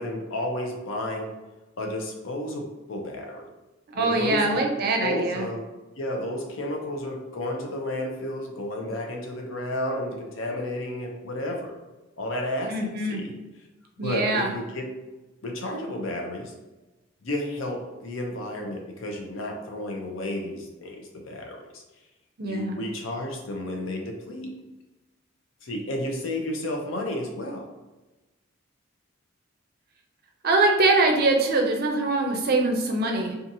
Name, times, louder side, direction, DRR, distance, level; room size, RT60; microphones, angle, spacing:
voice 1, 0.0-1.3 1.8-3.5 3.9-4.6 5.0-5.6 6.0-11.8 12.2-13.4 14.0-14.9 15.4-16.5 17.2-21.8 22.4-24.5 25.6-27.7, left 1 dB, 70° left, 1 dB, 0.6 m, -32 dB
voice 2, 3.9-5.5 12.7-13.2 14.0-14.5 22.4-22.8 30.4-33.4, right 2 dB, 50° right, 2 dB, 0.5 m, -23 dB
2.7 x 2.4 x 2.6 m, 1.1 s
head